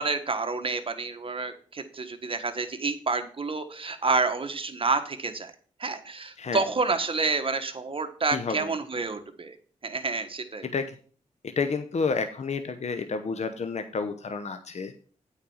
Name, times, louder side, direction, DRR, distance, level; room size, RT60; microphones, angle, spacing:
voice 1, 0.0-5.5 5.8-9.6 9.8-10.7, right 4 dB, 40° right, 7 dB, 1.4 m, -29 dB
voice 2, 8.3-8.7 10.6-11.0 11.4-14.9, left 4 dB, 55° left, 8 dB, 0.9 m, -30 dB
8.8 x 4.6 x 7.2 m, 0.43 s
cardioid pair, 50°, 14 cm